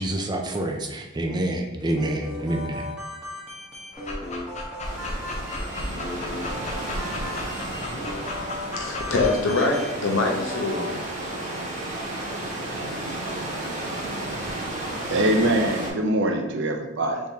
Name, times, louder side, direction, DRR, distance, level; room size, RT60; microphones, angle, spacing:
voice 1, 0.0-2.9, right 1 dB, 20° right, 3 dB, 0.4 m, -27 dB
sound 1, 1.9-10.9, left 1 dB, 5° right, 1.0 m, -37 dB
Dog, 3.9-9.4, left 2 dB, 35° left, 0.6 m, -34 dB
sound 2, 4.8-15.9, right 1 dB, 40° right, 1.2 m, -33 dB
voice 2, 8.7-10.9, left 3 dB, 75° left, 1 dB, 0.9 m, -24 dB
voice 3, 15.1-17.2, right 1 dB, 60° right, 3 dB, 0.6 m, -23 dB
4.7 x 3.6 x 2.8 m, 1.0 s
head